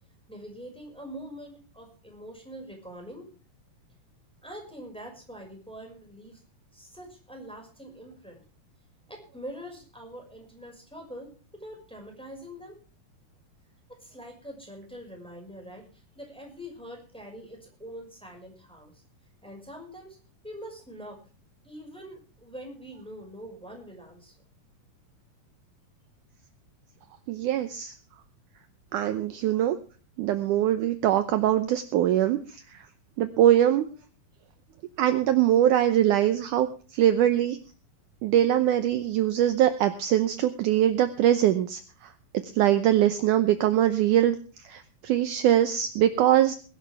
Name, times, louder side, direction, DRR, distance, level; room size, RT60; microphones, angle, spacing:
voice 1, 0.3-3.3 4.4-6.4 6.7-8.4 9.1-12.8 14.0-19.0 19.4-20.2 20.4-21.2 21.6-24.3, equal, ahead, 1 dB, 5.3 m, -44 dB
voice 2, 27.3-27.9 28.9-29.8 30.2-32.9 33.2-33.8 35.0-37.6 38.2-42.1 42.4-44.4 44.6-46.6, right 11 dB, 75° right, 9 dB, 2.1 m, -22 dB
21.0 x 12.0 x 3.5 m, 0.37 s
omnidirectional pair, 4.1 m